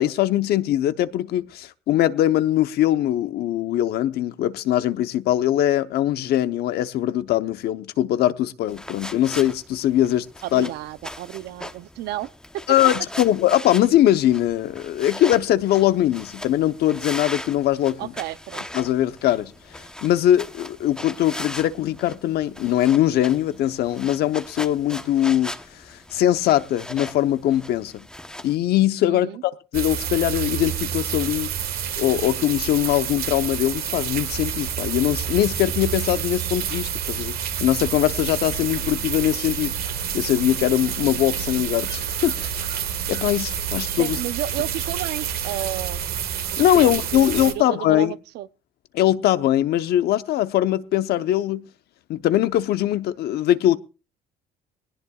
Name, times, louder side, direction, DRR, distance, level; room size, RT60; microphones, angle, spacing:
voice 1, 0.0-10.3 10.5-10.7 12.7-18.1 18.7-19.5 20.0-25.5 25.9-28.1 28.4-31.5 32.0-37.3 37.6-39.7 40.1-42.6 43.1-44.2 46.6-48.1 48.9-51.7 52.1-53.8, left 12 dB, 70° left, 0.9 m, -21 dB
sound 1, 8.7-28.6, left 1 dB, 5° left, 1.0 m, -39 dB
voice 2, 10.4-12.3 18.0-18.7 29.1-29.4 44.0-46.0 46.5-48.5, right 14 dB, 80° right, 0.7 m, -32 dB
sound 2, 29.7-47.5, right 8 dB, 65° right, 1.7 m, -28 dB
20.0 x 18.0 x 2.4 m
cardioid pair, 110°, 17 cm